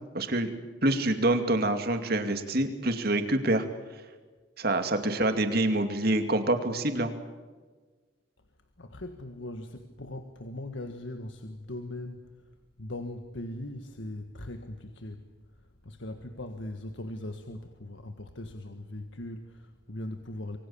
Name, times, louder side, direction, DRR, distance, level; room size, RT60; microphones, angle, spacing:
voice 1, 0.1-0.5 0.8-3.7 4.6-7.1, right 1 dB, 50° right, 7 dB, 2.5 m, -26 dB
voice 2, 8.8-12.3 12.8-15.3 15.8-20.6, left 1 dB, 65° left, 6 dB, 1.6 m, -40 dB
26.0 x 23.5 x 7.2 m, 1.3 s
head